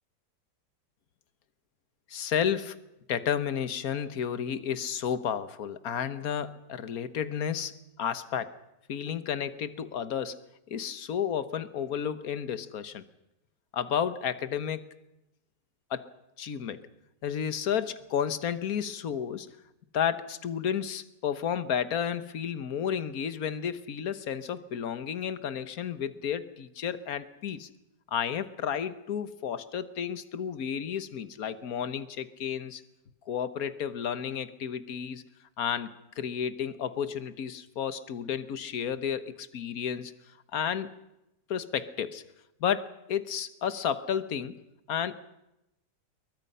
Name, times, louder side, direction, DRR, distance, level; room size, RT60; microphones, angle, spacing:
voice 1, 2.1-2.7 3.1-8.5 8.9-10.4 10.7-13.0 13.7-14.9 15.9-16.1 16.4-16.9 17.2-19.5 19.9-27.7 28.1-32.8 33.3-35.2 35.6-35.9 36.2-40.1 40.5-40.9 41.5-42.2 42.6-44.6 44.9-45.1, left 8 dB, 60° left, 12 dB, 1.7 m, -32 dB
28.5 x 23.0 x 5.6 m, 0.89 s
omnidirectional pair, 1.8 m